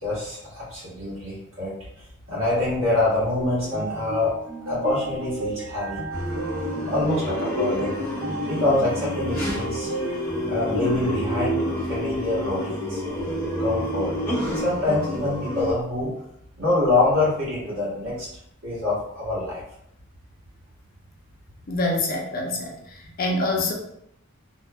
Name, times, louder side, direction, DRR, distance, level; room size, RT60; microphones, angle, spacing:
voice 1, 0.0-1.7 2.3-4.3 4.7-6.0 6.9-7.9 8.5-9.9 10.5-13.0 13.6-14.1 14.4-16.1 16.6-18.3 18.6-19.6, left 2 dB, 75° right, -7 dB, 1.5 m, -25 dB
sound 1, 3.3-10.1, right 3 dB, 60° right, 1.4 m, -34 dB
sound 2, 6.1-15.7, left 1 dB, 10° left, 1.0 m, -28 dB
voice 2, 21.7-22.7 23.2-23.7, left 2 dB, 45° left, 0 dB, 0.5 m, -25 dB
2.7 x 2.5 x 2.2 m, 0.74 s
head